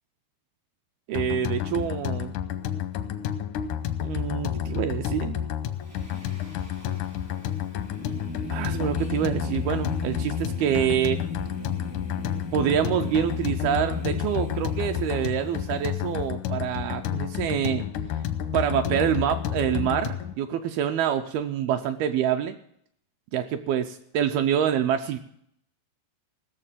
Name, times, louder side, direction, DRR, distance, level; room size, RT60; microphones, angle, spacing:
sound 1, 1.1-20.3, left 10 dB, 85° left, 1.8 m, -30 dB
voice 1, 1.1-2.3 4.0-5.4 8.5-11.2 12.5-17.8 18.5-22.6 23.3-25.2, right 9 dB, 80° right, 6 dB, 2.3 m, -26 dB
Singing, 5.8-16.2, left 1 dB, 25° right, 0.5 m, -38 dB
17.0 x 6.9 x 7.3 m, 0.69 s
omnidirectional pair, 4.8 m